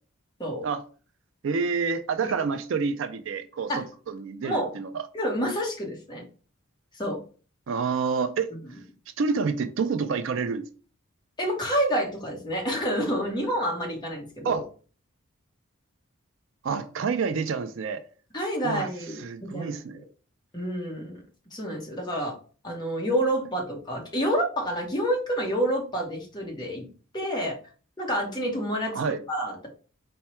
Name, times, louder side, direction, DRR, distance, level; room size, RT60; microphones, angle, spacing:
voice 1, 1.4-4.9 7.7-8.5 9.2-10.6 14.4-14.6 16.6-18.0 18.6-18.9 19.2-20.0 28.9-29.2, right 5 dB, 60° right, 0.4 m, -28 dB
voice 2, 5.1-6.2 6.9-7.2 8.5-8.6 11.4-14.6 18.3-19.2 19.5-19.7 20.5-21.2 21.5-22.3 22.6-26.9 27.1-27.6 28.0-29.0 29.3-29.7, equal, 20° left, 1.0 m, -28 dB
4.5 x 2.2 x 4.3 m
head